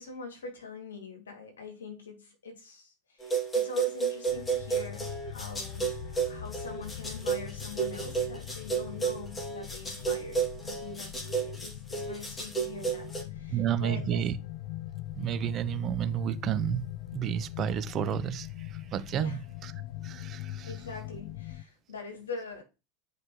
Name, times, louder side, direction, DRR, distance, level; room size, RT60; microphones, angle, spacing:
voice 1, 0.0-14.3 19.2-19.4 20.6-22.6, left 4 dB, 80° left, 2.3 m, -44 dB
sound 1, 3.2-13.2, right 5 dB, 15° left, 2.5 m, -32 dB
sound 2, 4.3-21.6, left 13 dB, 60° left, 0.5 m, -42 dB
voice 2, 13.5-14.3 15.2-16.8 17.1-19.7 20.0-20.7, right 10 dB, 40° right, 0.7 m, -31 dB
9.4 x 5.1 x 3.1 m
figure-of-eight pair, 80°, 0 cm